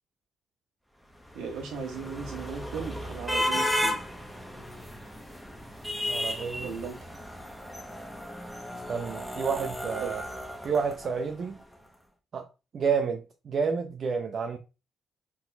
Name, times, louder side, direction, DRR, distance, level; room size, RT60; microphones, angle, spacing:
sound 1, 1.2-11.5, left 1 dB, ahead, 0.8 m, -34 dB
voice 1, 1.3-4.0 6.6-7.0 10.0-10.1, right 6 dB, 90° right, 1.4 m, -37 dB
voice 2, 6.1-6.7 8.9-10.2 10.6-11.6 12.3-12.5 12.7-14.6, right 6 dB, 55° right, 0.6 m, -30 dB
4.2 x 3.8 x 2.2 m
cardioid pair, 90°, 0 cm